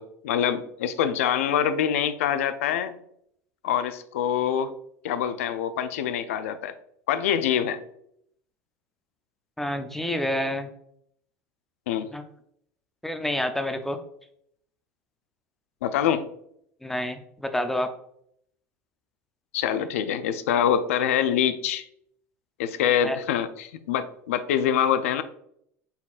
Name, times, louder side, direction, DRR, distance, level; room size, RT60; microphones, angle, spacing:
voice 1, 0.0-3.0 3.6-4.7 5.0-6.7 7.1-7.8 11.9-12.1 15.8-16.2 19.5-21.8 22.6-25.2, left 9 dB, 80° left, 12 dB, 0.4 m, -25 dB
voice 2, 9.6-10.7 12.1-12.2 13.0-14.0 16.8-17.9 23.0-23.2, left 1 dB, 5° left, 7 dB, 0.5 m, -28 dB
4.1 x 4.0 x 2.4 m, 0.70 s
hypercardioid pair, 90°, 7 cm